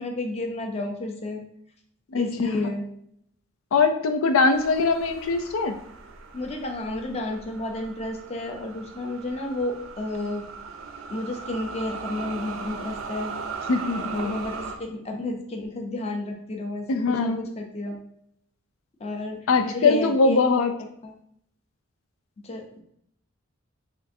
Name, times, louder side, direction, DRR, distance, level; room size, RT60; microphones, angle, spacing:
voice 1, 0.0-1.4 2.2-2.9 6.3-10.4 11.1-13.4 14.2-18.0 19.0-20.4 21.0-21.1 22.4-22.8, left 2 dB, 30° left, 3 dB, 0.6 m, -32 dB
voice 2, 2.1-2.7 3.7-5.7 13.7-14.4 16.9-17.4 19.5-20.7, left 4 dB, 90° left, 8 dB, 0.4 m, -22 dB
sound 1, 4.5-14.8, right 5 dB, 80° right, 0.5 m, -38 dB
6.0 x 2.5 x 2.6 m, 0.70 s
head